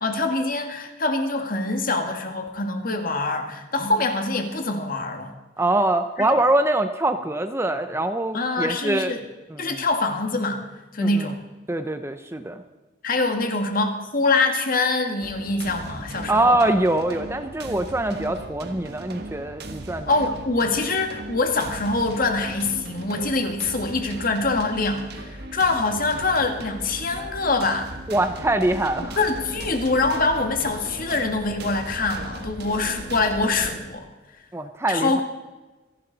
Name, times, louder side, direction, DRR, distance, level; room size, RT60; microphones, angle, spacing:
voice 1, 0.0-5.3 6.2-6.3 8.3-9.2 9.6-10.6 10.9-11.4 13.0-16.6 20.1-27.9 29.2-34.1 34.9-35.2, left 3 dB, 45° left, 5 dB, 1.8 m, -24 dB
voice 2, 5.6-9.1 9.5-9.8 11.0-11.3 11.7-12.6 16.3-20.2 28.1-29.2 34.5-35.2, right 1 dB, 15° right, 9 dB, 0.6 m, -23 dB
sound 1, 15.2-33.7, right 2 dB, 50° right, 1.4 m, -37 dB
26.5 x 11.0 x 4.0 m, 1.2 s
head